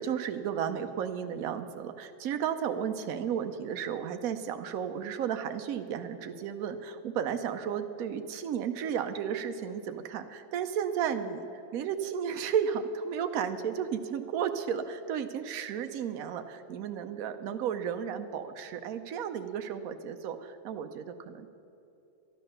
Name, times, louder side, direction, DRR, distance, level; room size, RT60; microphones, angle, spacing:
voice 1, 0.0-21.5, right 8 dB, 90° right, 7 dB, 0.7 m, -33 dB
13.0 x 10.5 x 6.5 m, 2.8 s
omnidirectional pair, 2.3 m